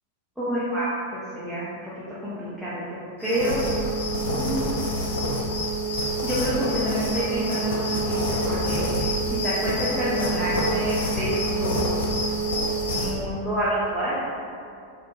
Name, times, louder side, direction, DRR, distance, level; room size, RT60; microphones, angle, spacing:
voice 1, 0.4-1.9 2.2-3.6 4.3-4.9 6.2-7.8 8.1-12.2 12.9-14.2, right 1 dB, ahead, -11 dB, 0.5 m, -28 dB
sound 1, 3.2-13.2, right 1 dB, 65° left, 0.4 m, -26 dB
2.7 x 2.2 x 2.2 m, 2.4 s
figure-of-eight pair, 90°, 0 cm